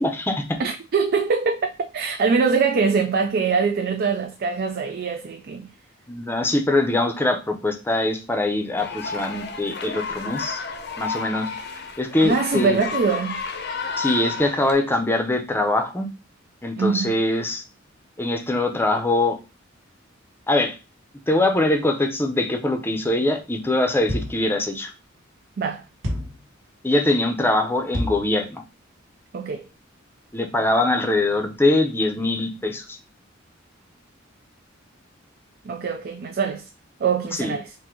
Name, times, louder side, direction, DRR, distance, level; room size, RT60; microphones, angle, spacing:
voice 1, 0.0-0.6 6.1-10.6 11.0-11.5 12.0-12.8 14.0-16.1 16.6-17.6 18.2-19.4 20.5-20.7 21.3-24.9 26.8-28.6 30.3-32.8 37.4-37.5, left 2 dB, 10° left, 0.6 m, -22 dB
voice 2, 0.6-5.7 12.2-13.4 16.8-17.1 25.6-25.8 29.3-29.6 35.6-36.7 37.0-37.7, right 5 dB, 50° right, 0.4 m, -23 dB
sound 1, 8.8-14.7, left 5 dB, 55° left, 0.6 m, -31 dB
sound 2, 24.1-24.5 26.0-26.4 27.9-28.3, equal, 80° right, 1.3 m, -28 dB
3.8 x 2.6 x 4.4 m
head